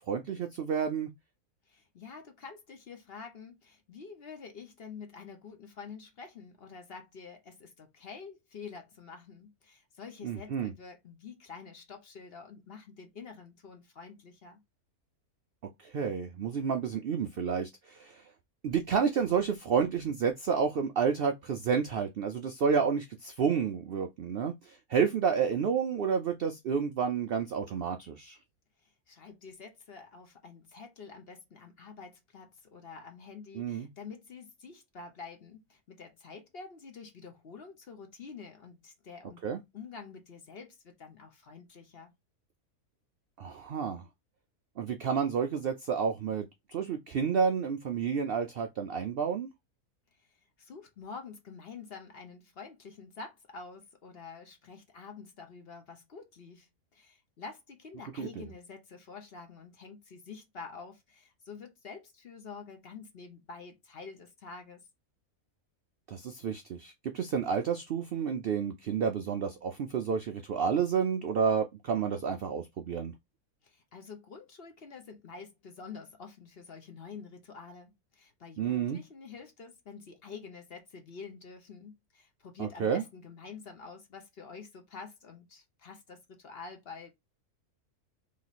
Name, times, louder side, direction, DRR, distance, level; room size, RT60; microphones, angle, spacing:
voice 1, 0.1-1.1 10.2-10.7 15.8-18.2 18.6-28.4 33.5-33.9 39.4-39.6 43.4-44.0 44.8-49.5 58.2-58.4 66.1-73.1 78.6-79.0 82.6-83.0, right 6 dB, 75° right, 0.5 m, -30 dB
voice 2, 1.7-14.6 28.8-39.4 39.7-42.1 50.2-64.9 73.6-87.1, left 5 dB, 50° left, 1.0 m, -48 dB
3.1 x 3.0 x 4.0 m
omnidirectional pair, 1.6 m